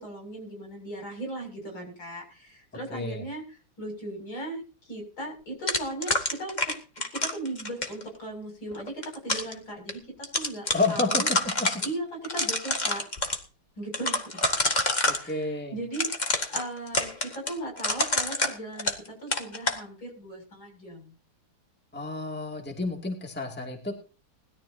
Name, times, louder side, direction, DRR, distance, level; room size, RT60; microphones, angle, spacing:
voice 1, 0.0-6.7 7.1-11.3 11.8-13.0 13.8-14.4 15.2-21.1, right 1 dB, 65° left, 2 dB, 7.9 m, -38 dB
voice 2, 2.9-3.2 10.7-11.8 15.0-15.7 21.9-23.9, left 2 dB, 5° left, 2 dB, 2.4 m, -30 dB
sound 1, 5.7-8.0 8.8-9.5 9.9-10.0 10.2-11.9 12.2-13.4 13.9-15.2 15.9-19.1 19.3-19.8, left 2 dB, 20° left, 1.8 m, -27 dB
20.5 x 13.5 x 2.8 m, 0.35 s
omnidirectional pair, 2.3 m